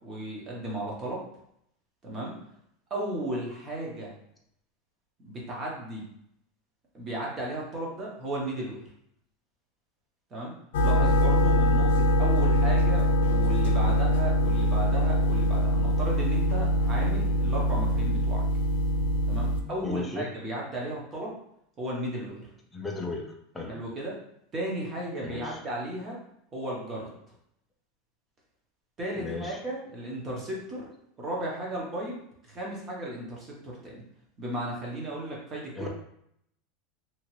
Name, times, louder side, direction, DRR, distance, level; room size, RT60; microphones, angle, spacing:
voice 1, 0.0-1.2 2.0-2.4 2.9-4.1 5.2-6.0 6.9-8.8 10.3-10.5 10.8-18.4 19.3-21.4 21.8-22.5 23.7-24.2 24.5-26.2 26.5-27.1 29.0-30.9 31.2-34.0 34.4-35.9, right 1 dB, 20° right, -3 dB, 0.7 m, -35 dB
sound 1, 10.7-19.6, equal, 80° left, 0.4 m, -23 dB
voice 2, 19.8-20.2 22.7-23.2 23.5-23.7 25.2-25.6 29.2-29.6 35.8-35.9, left 3 dB, 5° left, -1 dB, 0.4 m, -34 dB
2.8 x 2.4 x 2.9 m, 0.73 s
supercardioid pair, 175°, 0 cm